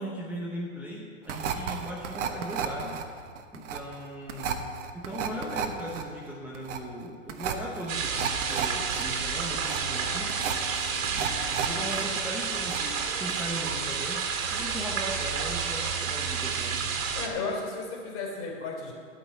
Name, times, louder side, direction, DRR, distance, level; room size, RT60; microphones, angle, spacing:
voice 1, 0.0-3.0 3.5-4.7 4.9-10.3 11.1-14.2 14.5-16.9, right 1 dB, 5° right, -3 dB, 0.8 m, -38 dB
sound 1, 1.3-12.0 12.3-13.0 13.3-13.4, right 7 dB, 65° right, 1.2 m, -33 dB
sound 2, 7.9-17.3, right 6 dB, 80° right, 2.2 m, -30 dB
sound 3, 9.1-14.3, equal, 55° left, 1.2 m, -48 dB
voice 2, 17.1-18.9, left 4 dB, 35° left, -1 dB, 3.5 m, -34 dB
12.0 x 5.7 x 8.3 m, 2.2 s
hypercardioid pair, 140°, 39 cm